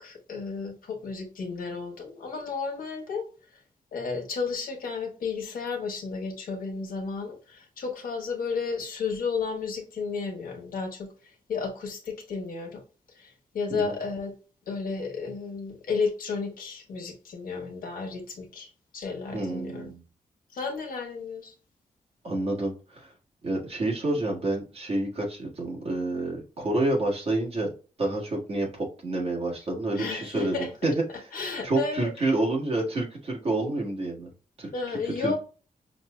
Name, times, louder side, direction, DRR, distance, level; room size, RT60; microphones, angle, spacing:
voice 1, 0.0-3.3 3.5-3.6 3.9-12.8 13.1-14.3 14.7-19.9 20.5-21.5 29.9-30.7 31.3-32.1 34.7-35.4, left 4 dB, 80° left, 1.3 m, -33 dB
voice 2, 19.3-20.0 22.2-23.1 23.4-27.7 28.0-31.3 31.6-34.3 34.6-35.4, right 2 dB, 45° right, 1.6 m, -28 dB
5.7 x 2.7 x 2.2 m
wide cardioid pair, 180°, 15 cm